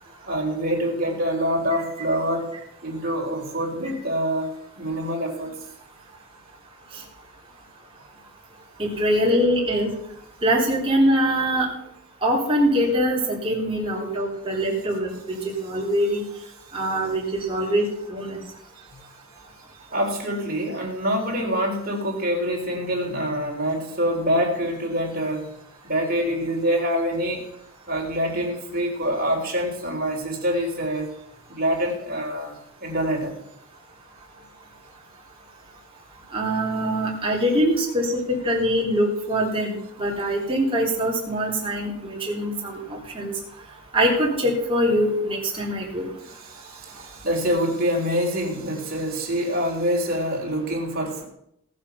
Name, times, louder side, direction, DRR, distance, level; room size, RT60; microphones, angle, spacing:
voice 1, 0.3-2.5 2.8-5.6 19.9-25.5 25.8-27.5 27.9-31.1 31.5-33.3 46.2-51.3, equal, 45° right, -1 dB, 3.7 m, -25 dB
voice 2, 8.8-9.9 10.4-11.7 12.2-16.2 16.7-17.8 18.1-18.4 36.3-43.3 43.9-46.1, equal, 25° right, -3 dB, 3.4 m, -23 dB
18.5 x 6.5 x 5.7 m, 0.77 s
head